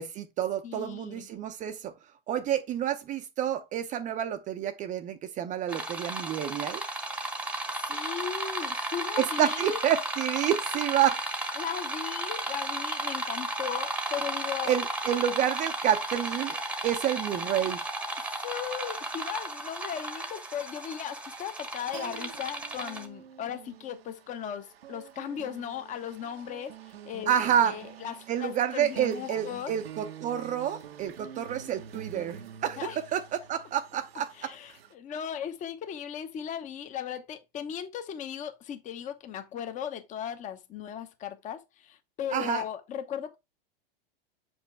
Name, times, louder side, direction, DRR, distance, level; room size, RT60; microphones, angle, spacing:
voice 1, 0.0-1.9 2.3-6.8 9.2-11.2 14.7-16.6 16.8-17.8 27.3-27.7 28.3-32.8 33.1-34.5 42.3-42.6, right 10 dB, 25° right, 0.6 m, -29 dB
voice 2, 0.6-1.3 7.9-9.8 11.6-14.7 18.2-26.8 27.0-27.3 27.6-29.7 32.8-33.0 34.3-43.4, left 9 dB, 25° left, 0.9 m, -37 dB
sound 1, 5.7-23.1, right 2 dB, 5° right, 1.0 m, -34 dB
sound 2, 21.6-34.9, right 9 dB, 90° right, 1.0 m, -46 dB
6.6 x 5.3 x 3.3 m
supercardioid pair, 135°, 29 cm